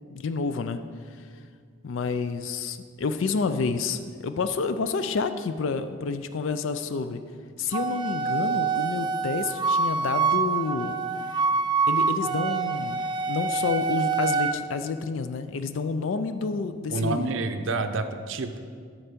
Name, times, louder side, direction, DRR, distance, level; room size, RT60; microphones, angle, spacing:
voice 1, 0.1-0.8 1.2-1.3 1.8-7.2 7.6-11.0 11.9-17.3, left 4 dB, 65° left, 10 dB, 0.4 m, -29 dB
Wind instrument woodwind instrument, 7.7-14.6, right 5 dB, 20° right, 0.3 m, -26 dB
voice 2, 16.9-18.6, right 3 dB, 70° right, 8 dB, 0.6 m, -28 dB
13.0 x 4.5 x 5.2 m, 2.1 s
head